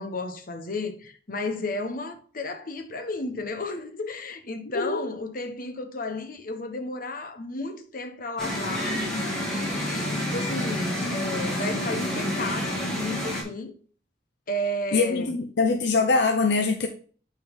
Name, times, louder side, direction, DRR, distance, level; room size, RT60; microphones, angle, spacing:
voice 1, 0.0-9.0 9.5-13.7 14.5-15.3, left 2 dB, 55° left, 1.1 m, -33 dB
sound 1, 8.4-13.4, equal, 5° left, 2.7 m, -29 dB
voice 2, 14.9-16.9, left 4 dB, 75° left, 0.7 m, -23 dB
9.1 x 4.6 x 3.7 m
head